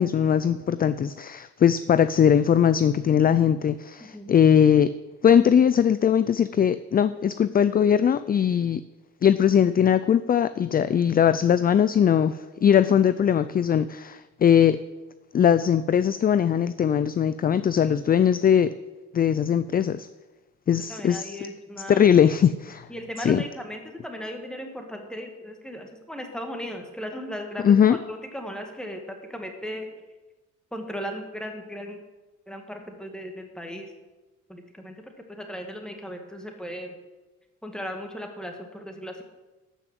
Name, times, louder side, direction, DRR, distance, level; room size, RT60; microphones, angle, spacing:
voice 1, 0.0-4.9 5.2-8.8 9.2-14.8 15.3-18.7 19.1-20.1 20.7-21.4 21.9-22.9 23.2-23.4 27.6-28.0, left 8 dB, 30° left, 14 dB, 0.4 m, -20 dB
voice 2, 20.9-22.0 22.9-27.7 28.1-29.9 30.7-32.0 32.5-33.9 34.5-36.9 37.6-39.2, equal, ahead, 3 dB, 2.1 m, -37 dB
12.0 x 6.1 x 7.6 m, 1.1 s
cardioid pair, 90°, 30 cm